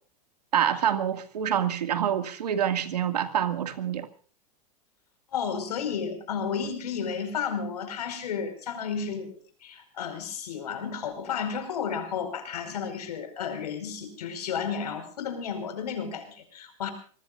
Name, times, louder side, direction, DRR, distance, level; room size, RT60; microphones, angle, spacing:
voice 1, 0.5-4.1, right 9 dB, 85° right, 2.3 m, -26 dB
voice 2, 5.3-9.3 9.6-16.9, left 6 dB, 80° left, 5.1 m, -32 dB
25.5 x 20.0 x 2.6 m
hypercardioid pair, 105°, 20 cm